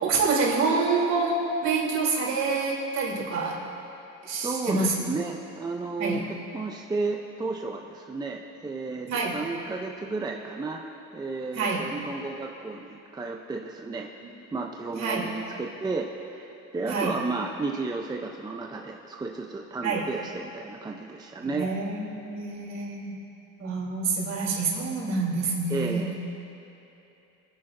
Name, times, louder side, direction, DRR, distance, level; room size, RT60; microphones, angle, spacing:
voice 1, 0.0-3.6 4.2-4.9 6.0-6.2 9.1-9.4 11.5-11.8 15.0-15.2 16.9-17.1 19.8-20.0 21.4-23.1 23.6-26.1, right 4 dB, 55° right, -4 dB, 3.4 m, -27 dB
voice 2, 4.4-10.8 11.1-14.1 14.5-21.7 25.7-26.1, right 3 dB, 15° right, 1 dB, 0.5 m, -33 dB
25.5 x 10.0 x 2.6 m, 3.0 s
cardioid pair, 130°, 32 cm